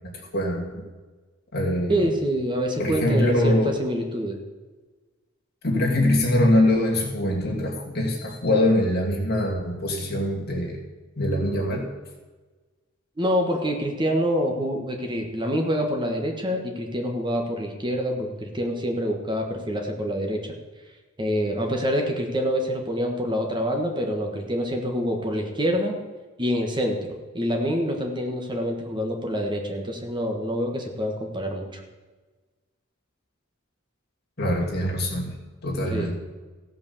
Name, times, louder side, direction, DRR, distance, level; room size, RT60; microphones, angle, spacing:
voice 1, 0.3-0.8 1.5-2.0 2.8-3.7 5.6-10.8 11.2-11.9 34.4-35.3 35.6-36.1, left 1 dB, 50° left, -1 dB, 2.7 m, -23 dB
voice 2, 1.9-4.4 13.2-20.4 21.2-26.0 26.4-31.8 35.9-36.1, equal, 25° right, 2 dB, 1.5 m, -26 dB
16.0 x 5.6 x 7.2 m, 1.3 s
head